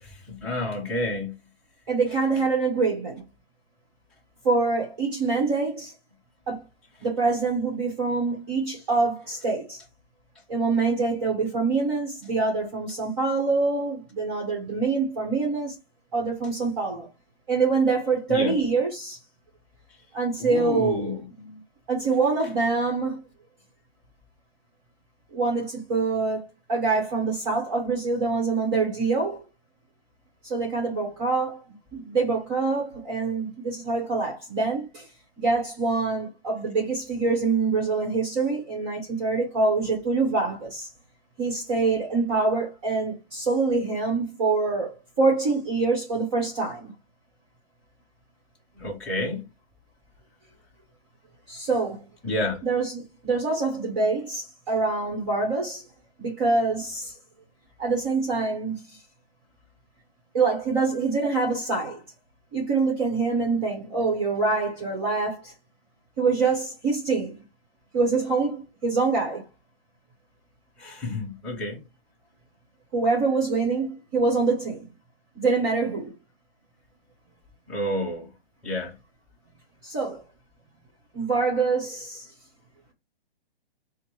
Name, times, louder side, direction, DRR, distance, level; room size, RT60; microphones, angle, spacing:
voice 1, 0.0-1.3 18.3-18.6 20.4-21.2 48.8-49.5 52.2-52.6 70.8-71.8 77.7-78.3 78.6-78.9, left 1 dB, 5° left, 0.8 m, -29 dB
voice 2, 1.9-3.2 4.4-5.9 6.5-6.6 7.0-9.8 10.5-15.8 16.1-17.1 17.5-19.2 20.1-21.6 21.9-23.2 25.3-29.4 30.4-31.6 31.9-35.1 35.4-40.9 41.4-46.9 51.5-52.0 52.6-55.8 56.2-57.1 57.8-59.0 60.3-62.0 62.5-65.5 66.2-67.4 67.9-69.4 72.9-74.9 75.3-76.1 79.8-80.2 81.1-82.3, right 4 dB, 25° right, 1.1 m, -25 dB
4.7 x 2.2 x 4.5 m
hypercardioid pair, 165°, 30 cm